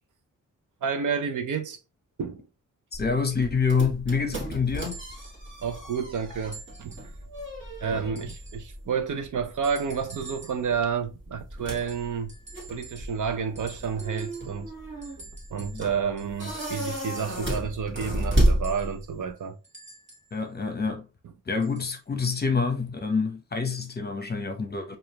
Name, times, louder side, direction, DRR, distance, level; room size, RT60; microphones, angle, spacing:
voice 1, 0.8-1.8 2.2-2.5 5.6-7.0 7.8-12.3 12.7-14.7 15.5-19.6, right 6 dB, 70° right, 0.7 m, -30 dB
voice 2, 2.9-5.0 15.7-15.8 20.3-21.1 21.5-25.0, left 5 dB, 30° left, 0.8 m, -27 dB
sound 1, 2.9-19.3, right 1 dB, 40° right, 1.6 m, -32 dB
sound 2, 4.8-5.4 6.5-7.2 8.2-8.7 9.6-10.7 11.8-13.3 13.6-14.6 15.0-17.6 18.6-20.4 21.6-22.0 22.9-23.0, right 2 dB, 20° right, 1.4 m, -48 dB
4.9 x 2.5 x 2.8 m
wide cardioid pair, 135°, 32 cm